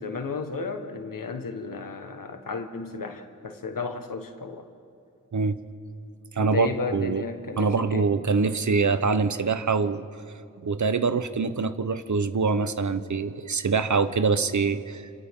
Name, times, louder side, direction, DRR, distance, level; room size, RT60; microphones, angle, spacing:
voice 1, 0.0-4.7 6.4-8.1, left 4 dB, 85° left, 6 dB, 1.5 m, -33 dB
voice 2, 6.3-7.2 7.6-10.0 10.6-15.0, right 4 dB, 60° right, 11 dB, 1.0 m, -24 dB
28.0 x 27.5 x 3.8 m, 2.5 s
wide cardioid pair, 55°, 32 cm